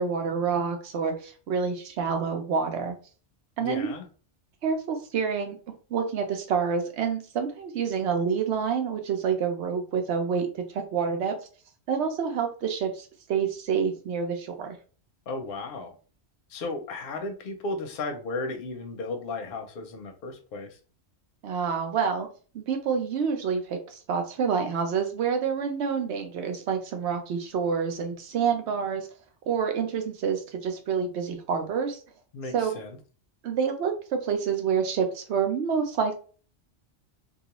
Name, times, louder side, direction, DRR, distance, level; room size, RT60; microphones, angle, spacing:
voice 1, 0.0-3.0 3.6-3.9 4.6-5.6 5.9-11.4 11.9-14.8 21.4-22.3 22.5-29.1 29.5-32.0 32.5-32.8 33.4-36.1, right 6 dB, 75° right, 5 dB, 0.9 m, -28 dB
voice 2, 3.6-4.1 15.3-16.0 16.5-20.7 32.3-33.0, left 2 dB, 60° left, 4 dB, 0.7 m, -34 dB
2.4 x 2.3 x 2.9 m, 0.38 s
omnidirectional pair, 1.2 m